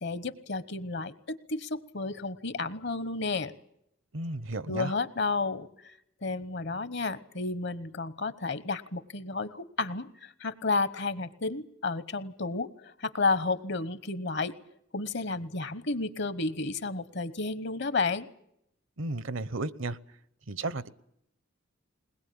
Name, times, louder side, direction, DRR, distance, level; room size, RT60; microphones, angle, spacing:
voice 1, 0.0-3.5 4.7-14.5 14.9-18.3, left 3 dB, 55° left, 15 dB, 1.1 m, -32 dB
voice 2, 4.1-4.9 19.0-20.0 20.5-20.9, right 2 dB, 70° right, 18 dB, 0.9 m, -33 dB
21.5 x 20.5 x 8.7 m, 0.76 s
head